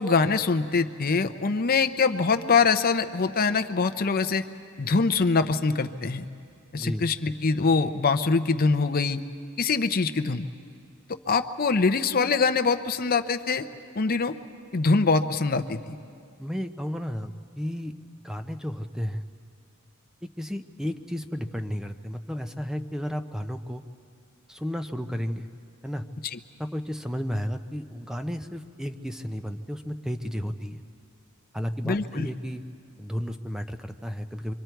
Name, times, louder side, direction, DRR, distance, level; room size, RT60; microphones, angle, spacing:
voice 1, 0.0-4.4 4.8-6.3 6.7-9.2 9.6-10.4 11.3-13.7 14.0-14.3 14.7-15.9 26.3-26.4 31.8-32.3, left 4 dB, 40° left, 9 dB, 0.6 m, -24 dB
voice 2, 6.7-7.0 16.4-17.9 18.2-19.2 20.4-23.8 24.5-25.5 25.8-26.0 26.6-30.8 31.5-32.6 33.0-34.5, equal, ahead, 8 dB, 0.6 m, -33 dB
26.0 x 24.5 x 4.6 m, 2.3 s
head